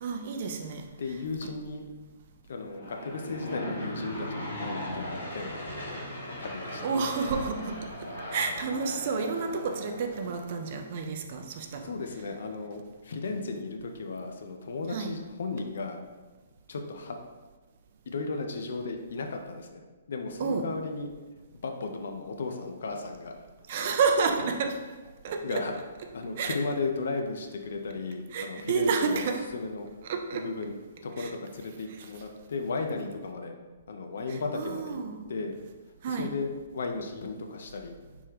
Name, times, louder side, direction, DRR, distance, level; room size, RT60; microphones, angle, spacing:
voice 1, 0.0-0.8 6.8-7.9 8.3-11.9 14.9-15.1 20.4-20.7 23.7-24.8 25.2-25.6 26.4-26.6 28.3-29.5 30.1-30.5 31.2-31.3 31.9-32.1 34.5-35.2 36.0-36.3, right 5 dB, 50° right, 4 dB, 0.4 m, -30 dB
voice 2, 1.0-1.9 2.5-5.7 6.4-6.9 11.8-16.0 16.7-17.2 18.1-19.8 20.1-21.1 21.6-23.4 25.4-25.8 26.1-29.2 29.5-29.9 30.3-30.7 31.0-33.6 33.9-35.0 35.3-35.5 36.1-38.0, left 3 dB, 65° left, 4 dB, 0.4 m, -35 dB
Aircraft / Engine, 2.6-10.6, left 1 dB, 80° left, 0.9 m, -38 dB
3.4 x 2.2 x 3.2 m, 1.3 s
figure-of-eight pair, 125°, 0 cm